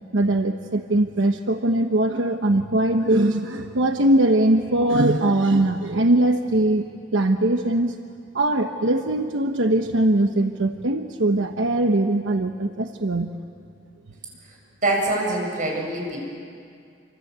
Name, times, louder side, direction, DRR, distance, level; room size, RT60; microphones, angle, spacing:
voice 1, 0.1-6.9 7.1-8.0 8.3-13.3, right 1 dB, 90° right, 5 dB, 1.1 m, -21 dB
voice 2, 14.8-16.2, right 2 dB, 45° right, 0 dB, 7.4 m, -24 dB
27.5 x 25.5 x 8.2 m, 2.3 s
head